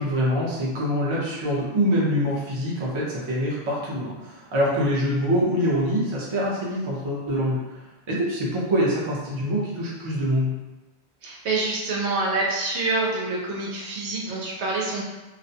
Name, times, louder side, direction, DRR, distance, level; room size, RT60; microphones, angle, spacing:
voice 1, 0.0-7.7 8.1-10.6, equal, 35° right, -5 dB, 0.5 m, -24 dB
voice 2, 11.2-15.0, right 3 dB, 85° right, -3 dB, 0.9 m, -26 dB
2.5 x 2.1 x 2.7 m, 1.1 s
omnidirectional pair, 1.1 m